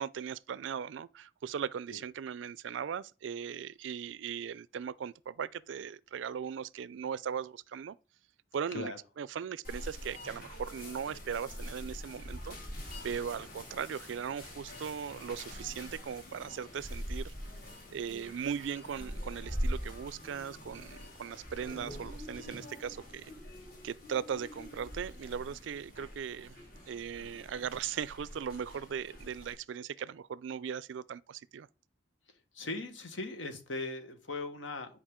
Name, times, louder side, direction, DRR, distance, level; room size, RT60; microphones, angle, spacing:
voice 1, 0.0-8.0 8.5-12.6 13.0-17.3 17.9-23.3 23.8-26.6 26.9-31.7, right 7 dB, 75° right, 0.3 m, -38 dB
sound 1, 9.6-29.5, equal, 45° left, 2.5 m, -43 dB
voice 2, 32.5-35.0, left 2 dB, 80° left, 1.3 m, -39 dB
9.9 x 4.7 x 3.7 m
head